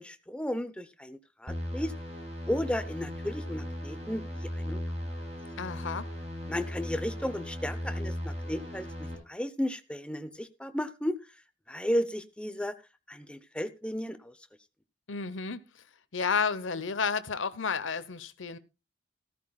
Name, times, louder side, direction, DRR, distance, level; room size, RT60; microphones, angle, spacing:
voice 1, 0.0-1.9 2.5-4.8 6.5-8.9 9.3-11.2 11.7-12.7 13.1-14.3, equal, 5° left, 0.7 m, -34 dB
sound 1, 1.5-9.2, equal, 35° right, 6.3 m, -37 dB
voice 2, 5.6-6.1 15.1-15.8 16.1-18.6, left 5 dB, 70° left, 0.9 m, -31 dB
15.0 x 13.5 x 2.3 m
head